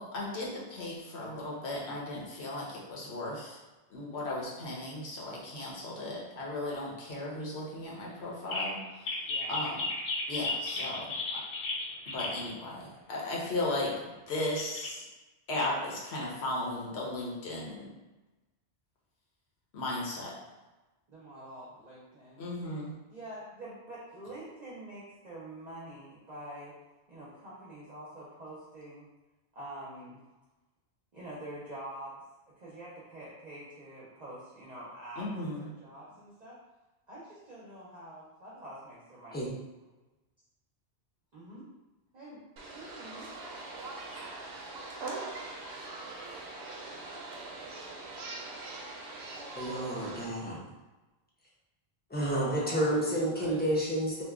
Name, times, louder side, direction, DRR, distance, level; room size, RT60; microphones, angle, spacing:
voice 1, 0.0-3.6 3.9-9.1 9.5-9.8 10.3-11.4 12.1-15.0 15.5-17.9 19.7-20.4 22.4-22.9 35.2-35.7, left 2 dB, 85° left, -4 dB, 1.1 m, -36 dB
sound 1, 8.2-8.3 8.5-8.7 9.1-12.5 13.9-14.0 14.5-14.9, left 3 dB, 55° left, 0.7 m, -34 dB
voice 2, 21.1-22.4 23.1-26.7 27.1-29.1 29.5-30.2 31.1-32.2 32.6-35.3 35.5-36.6 37.1-39.4 41.3-41.7 42.1-42.4 42.7-43.3 52.1-53.7, right 1 dB, 45° right, -7 dB, 0.7 m, -46 dB
sound 2, 42.6-50.3, right 3 dB, 80° right, 0.9 m, -42 dB
voice 3, 49.5-50.6 52.1-54.2, right 1 dB, 10° left, -6 dB, 0.6 m, -30 dB
2.8 x 2.2 x 3.5 m, 1.1 s
omnidirectional pair, 1.1 m